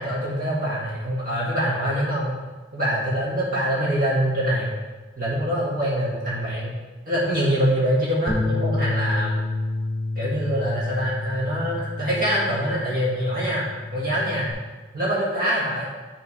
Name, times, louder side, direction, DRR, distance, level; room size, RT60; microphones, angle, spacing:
voice 1, 0.0-2.4 2.7-4.7 5.2-6.7 7.1-9.4 10.2-13.6 13.9-14.5 14.9-15.9, equal, 50° right, -6 dB, 1.8 m, -24 dB
Bass guitar, 8.3-14.5, left 2 dB, 5° left, 1.3 m, -29 dB
10.5 x 3.7 x 4.9 m, 1.3 s
head